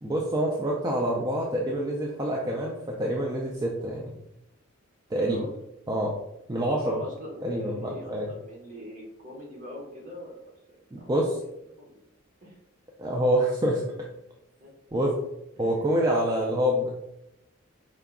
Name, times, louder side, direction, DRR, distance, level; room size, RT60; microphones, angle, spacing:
voice 1, 0.0-4.2 5.1-5.4 5.9-6.1 6.5-7.0 7.4-8.3 10.9-11.4 13.0-13.9 14.9-15.2 15.6-16.9, equal, 20° right, -2 dB, 0.4 m, -26 dB
voice 2, 5.2-5.5 6.8-11.5 11.8-12.0 12.4-12.6 14.6-14.7 15.6-15.9, left 1 dB, 40° right, -2 dB, 1.2 m, -42 dB
4.9 x 2.3 x 3.6 m, 0.86 s
head